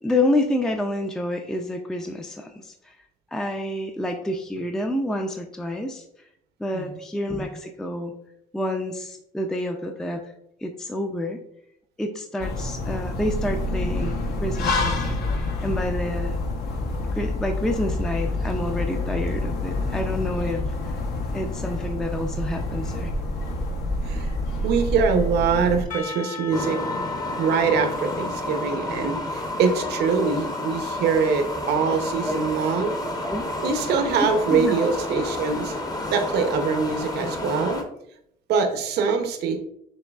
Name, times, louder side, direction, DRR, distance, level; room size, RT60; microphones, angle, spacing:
voice 1, 0.0-3.0 3.3-6.1 6.6-8.1 8.5-10.2 10.6-11.4 12.0-14.1 14.4-16.4 17.1-20.6 21.3-23.1 31.9-32.0 32.2-32.4 33.0-33.4 34.5-34.8, left 1 dB, 5° left, 4 dB, 0.4 m, -28 dB
sound 1, 12.4-25.8, left 2 dB, 70° left, 0.9 m, -27 dB
voice 2, 24.6-26.8 27.3-32.9 33.6-35.7 36.1-37.8 38.5-39.6, right 5 dB, 75° right, 6 dB, 0.7 m, -23 dB
Percussion / Church bell, 25.9-30.9, left 7 dB, 50° left, 1.2 m, -40 dB
sound 2, 26.5-37.8, left 1 dB, 20° left, 0.7 m, -30 dB
6.2 x 3.1 x 2.3 m, 0.74 s
cardioid pair, 110°, 17 cm